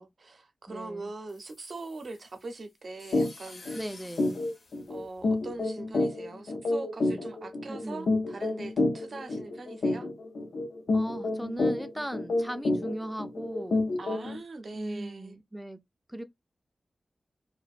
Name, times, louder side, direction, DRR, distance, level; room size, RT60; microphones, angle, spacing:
voice 1, 0.0-3.8 4.9-10.1 14.0-15.3, right 3 dB, 60° right, 0.6 m, -42 dB
voice 2, 0.7-1.1 3.7-4.4 7.7-8.2 10.9-13.9 14.7-15.8 16.1-16.2, right 1 dB, 5° right, 0.4 m, -38 dB
sound 1, 1.3-5.6, left 3 dB, 70° left, 0.8 m, -52 dB
sound 2, 3.1-3.3 3.7-3.8 4.2-14.4, left 2 dB, 90° left, 0.5 m, -29 dB
2.5 x 2.1 x 2.3 m
wide cardioid pair, 125°, 0 cm